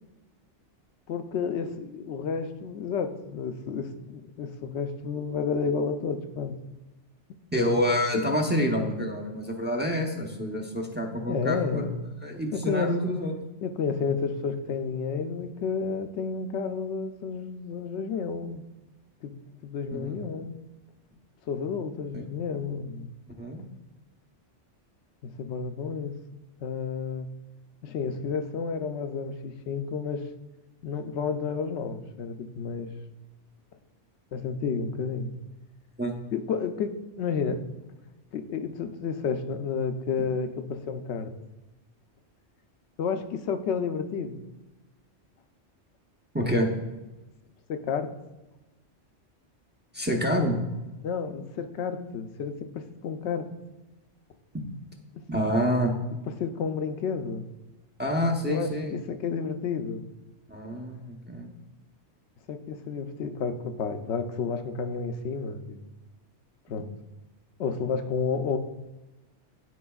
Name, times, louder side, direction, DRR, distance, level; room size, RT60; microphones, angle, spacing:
voice 1, 1.1-6.6 11.3-12.0 12.5-13.0 13.6-18.6 19.2-19.3 19.6-20.5 21.5-23.1 25.2-26.2 26.6-27.3 27.8-30.3 30.8-32.9 34.3-35.3 36.3-37.6 38.3-41.3 43.0-44.4 47.7-48.1 51.0-53.5 56.2-57.5 58.5-60.1 62.5-65.8 66.7-66.9 67.6-68.6, left 5 dB, 70° left, 9 dB, 0.9 m, -31 dB
voice 2, 7.5-11.8 12.2-13.3 19.9-20.2 22.1-22.2 23.4-23.6 36.0-36.1 46.3-46.7 49.9-50.6 55.3-55.9 58.0-59.0 60.5-61.5, equal, 10° right, 1 dB, 0.6 m, -27 dB
12.5 x 4.6 x 2.3 m, 1.1 s
omnidirectional pair, 1.2 m